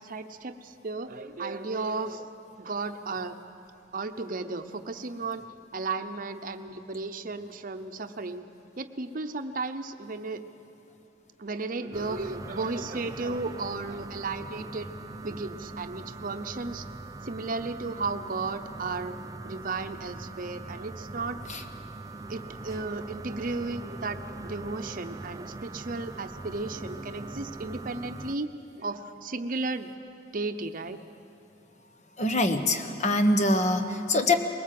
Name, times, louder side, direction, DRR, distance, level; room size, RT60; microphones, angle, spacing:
voice 1, 0.0-2.3 2.6-3.4 3.9-5.4 5.7-8.4 8.8-10.4 11.4-14.9 15.2-16.8 17.2-19.2 19.4-21.4 22.3-28.5 28.7-29.9 30.3-31.0, right 3 dB, 50° right, 7 dB, 0.8 m, -34 dB
sound 1, 11.9-28.4, right 2 dB, 20° right, 0.5 m, -41 dB
voice 2, 32.2-34.4, left 2 dB, 40° left, 7 dB, 1.2 m, -24 dB
21.5 x 18.5 x 7.7 m, 2.8 s
head